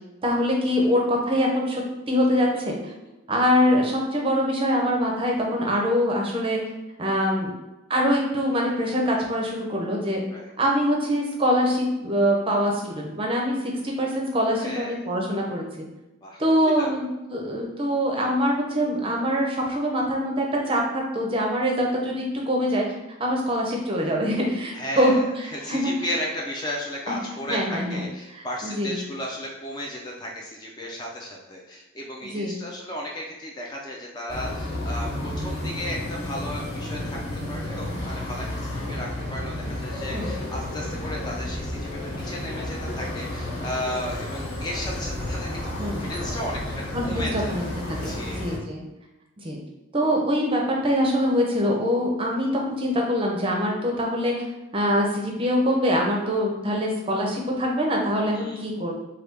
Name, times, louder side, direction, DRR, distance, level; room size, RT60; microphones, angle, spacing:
voice 1, 0.2-1.8 2.1-2.8 3.3-6.6 7.0-7.5 7.9-10.2 10.6-15.9 16.4-22.8 23.2-26.1 27.1-27.2 27.5-28.0 28.3-28.9 32.3-32.5 40.1-40.3 45.8-46.1 46.9-48.8 49.4-49.6 49.9-54.3 54.7-58.9, equal, 25° right, -1 dB, 0.6 m, -24 dB
voice 2, 14.6-15.0 16.2-17.0 24.7-37.2 37.5-47.6 48.0-48.4 58.3-58.7, left 1 dB, 20° left, -1 dB, 0.4 m, -34 dB
sound 1, 34.3-48.6, left 1 dB, 60° left, 1.3 m, -31 dB
3.3 x 2.3 x 3.3 m, 0.98 s
head